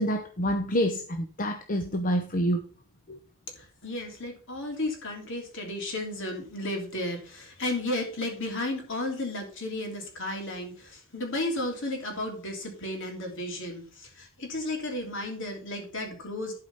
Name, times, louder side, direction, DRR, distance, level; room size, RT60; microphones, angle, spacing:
voice 1, 0.0-2.6 3.1-3.2, equal, 40° left, 0.8 m, -27 dB
voice 2, 3.8-16.5, left 1 dB, 60° left, 3.1 m, -33 dB
12.0 x 4.9 x 5.5 m
head